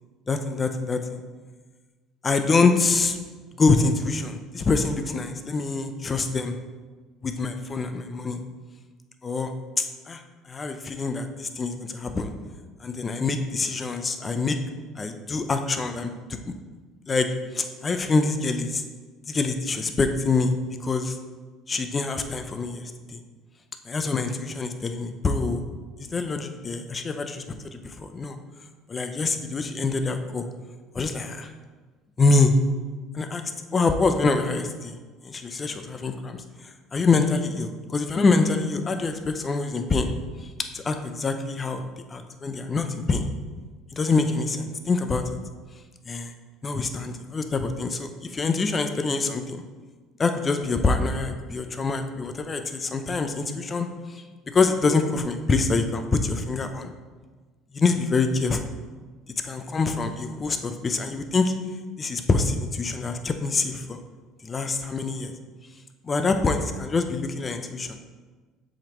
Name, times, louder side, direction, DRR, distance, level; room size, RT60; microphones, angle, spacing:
voice 1, 0.3-1.2 2.2-3.2 3.6-6.6 7.2-8.4 9.2-9.5 9.8-10.2 10.5-12.3 12.8-14.6 15.0-16.1 16.4-16.5 17.1-17.3 17.5-18.8 19.3-20.5 20.8-21.2 21.7-23.2 23.9-25.6 26.0-27.4 28.0-28.4 28.9-30.5 30.9-31.5 32.2-32.5 33.1-33.4 33.7-35.0 35.2-36.4 36.9-40.1 40.7-41.8 42.1-43.3 43.9-45.2 46.1-46.3 46.6-49.6 50.2-53.9 54.5-56.9 57.7-58.6 59.4-61.5 62.0-64.0 64.4-65.3 66.0-68.0, left 4 dB, 25° left, 7 dB, 0.6 m, -25 dB
7.2 x 5.1 x 3.0 m, 1.4 s
supercardioid pair, 100°, 0 cm